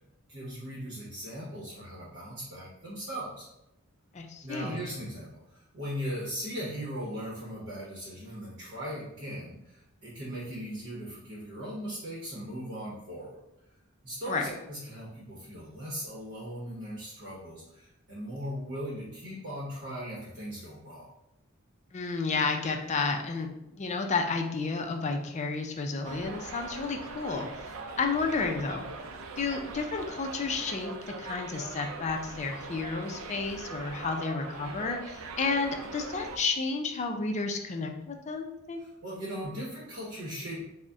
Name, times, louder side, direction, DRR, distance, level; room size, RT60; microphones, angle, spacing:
voice 1, 0.3-3.5 4.4-13.4 14.0-21.1 38.8-40.6, equal, 55° right, -6 dB, 0.9 m, -39 dB
voice 2, 4.1-4.8 14.3-14.4 21.9-27.5 28.0-28.9 29.4-30.9 31.2-38.8, left 4 dB, 35° left, 3 dB, 0.4 m, -31 dB
Subway metro underground, 26.0-36.4, right 3 dB, 75° right, 0.4 m, -41 dB
3.9 x 2.1 x 3.5 m, 0.86 s
head